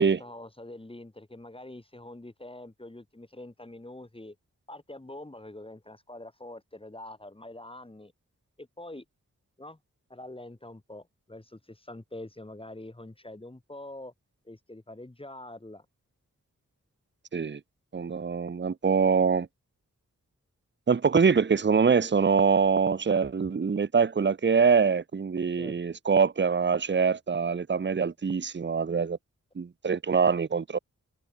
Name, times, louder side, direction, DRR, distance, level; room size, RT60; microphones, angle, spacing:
voice 1, 0.0-4.4 4.7-8.1 8.6-9.0 9.6-9.8 10.1-14.1 14.4-15.9 25.6-25.8, left 1 dB, 20° left, 2.8 m, -45 dB
voice 2, 17.9-19.5 20.9-29.2 29.6-30.8, right 5 dB, 35° right, 0.8 m, -24 dB
wide cardioid pair, 90°, 30 cm